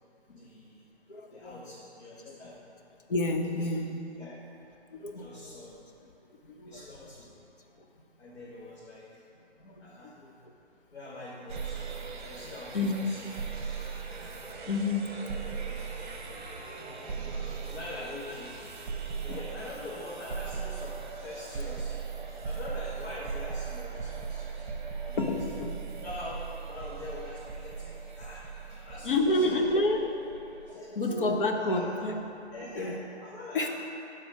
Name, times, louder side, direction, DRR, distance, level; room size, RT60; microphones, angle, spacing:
voice 1, 0.3-0.8 1.2-2.6 3.5-3.7 4.2-4.4 5.1-5.9 6.7-7.4 8.2-9.2 9.8-10.2 10.9-13.3 13.7-13.9 15.1-15.4 17.2-18.6 19.2-22.0 22.4-24.7 25.0-25.6 26.0-29.8 30.6-32.0 32.5-33.7, left 2 dB, 65° left, -7 dB, 1.6 m, -44 dB
voice 2, 1.1-1.6 2.2-2.4 3.1-3.9 4.9-5.6 6.5-7.1 9.6-10.3 12.7-13.1 14.6-15.1 16.7-17.4 19.2-19.4 25.2-25.7 29.0-30.0 30.7-32.2 32.8-33.0 33.5-33.7, left 2 dB, 50° left, 3 dB, 0.7 m, -30 dB
sound 1, 11.5-30.7, right 5 dB, 45° right, 0.8 m, -38 dB
7.1 x 4.2 x 6.2 m, 2.8 s
hypercardioid pair, 155°, 34 cm